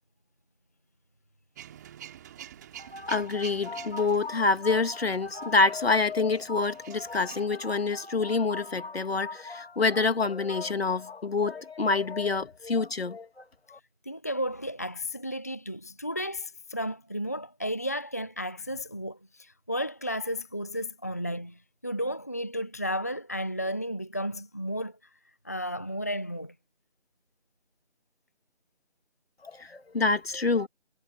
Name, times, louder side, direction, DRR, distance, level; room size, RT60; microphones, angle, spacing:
Male speech man speaking / Vehicle / Engine starting, 1.6-7.5, right 11 dB, 15° right, 2.6 m, -48 dB
voice 1, 2.8-13.4 13.7-13.8 29.4-30.7, left 4 dB, 60° left, 2.2 m, -27 dB
voice 2, 14.1-25.0 25.4-26.5, equal, 15° left, 0.7 m, -33 dB
figure-of-eight pair, 165°, 34 cm